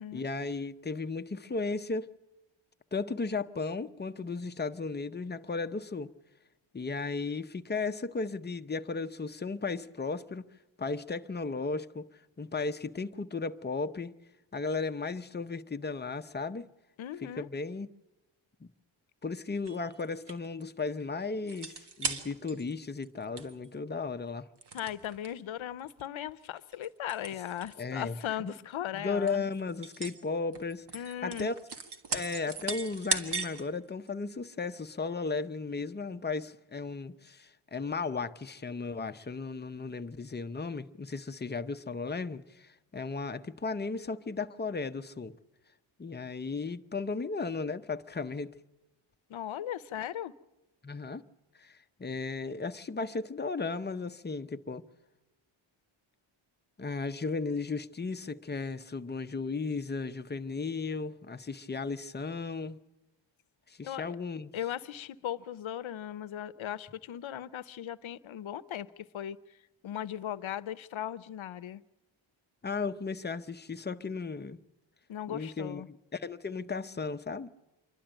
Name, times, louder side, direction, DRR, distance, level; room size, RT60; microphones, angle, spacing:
voice 1, 0.1-2.1 2.9-6.1 6.7-10.5 10.8-12.1 12.4-14.2 14.5-16.7 17.2-17.9 18.6-18.7 19.2-24.5 27.8-28.5 28.9-31.5 32.1-45.3 46.0-48.5 50.8-51.2 51.6-54.8 56.8-62.8 63.7-64.5 72.6-74.6 75.3-77.5, left 4 dB, 20° left, 0.7 m, -35 dB
voice 2, 17.0-17.5 24.7-29.5 30.9-31.5 49.3-50.3 63.8-64.1 64.5-69.4 69.8-71.8 75.1-75.9, left 11 dB, 70° left, 0.8 m, -38 dB
sound 1, 19.7-20.6 21.5-22.7 23.0-23.1 23.4-23.7 24.6-25.3 25.9-26.1 26.6-27.7 28.1-28.3 28.9-29.0 29.3-30.2 30.5-33.6 34.1-34.2, right 4 dB, 55° right, 1.6 m, -37 dB
27.0 x 12.0 x 8.9 m
wide cardioid pair, 95°, 49 cm